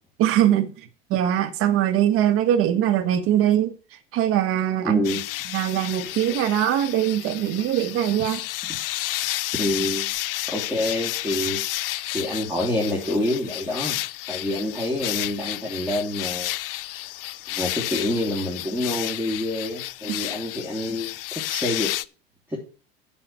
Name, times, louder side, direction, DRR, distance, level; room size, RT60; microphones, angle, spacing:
voice 1, 0.2-3.8 4.1-5.0 5.5-8.4 20.1-20.2, right 11 dB, 50° right, 1.6 m, -22 dB
voice 2, 4.8-5.2 9.6-10.1 10.5-11.7 12.1-14.0 14.3-16.5 17.5-21.2 21.5-21.9 22.5-22.7, left 1 dB, 5° right, 3.2 m, -27 dB
sound 1, 5.0-22.1, left 16 dB, 70° left, 0.5 m, -31 dB
7.9 x 6.5 x 7.3 m
hypercardioid pair, 90°, 29 cm